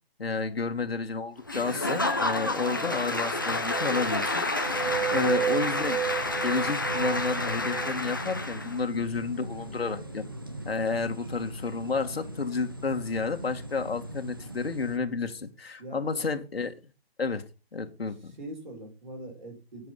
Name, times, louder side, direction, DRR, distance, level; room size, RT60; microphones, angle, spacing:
voice 1, 0.2-6.1 6.4-10.3 10.7-16.7 17.2-17.4 17.7-18.4, left 4 dB, 70° left, 2.0 m, -31 dB
Applause / Crowd, 1.5-8.8, left 2 dB, 20° left, 0.8 m, -30 dB
sound 1, 1.5-2.6 3.0-7.9, right 8 dB, 90° right, 2.1 m, -33 dB
sound 2, 4.6-15.0, equal, 20° right, 0.7 m, -40 dB
voice 2, 15.8-16.2 18.4-19.9, right 1 dB, 50° right, 5.5 m, -42 dB
10.5 x 7.6 x 5.7 m
hypercardioid pair, 180°, 31 cm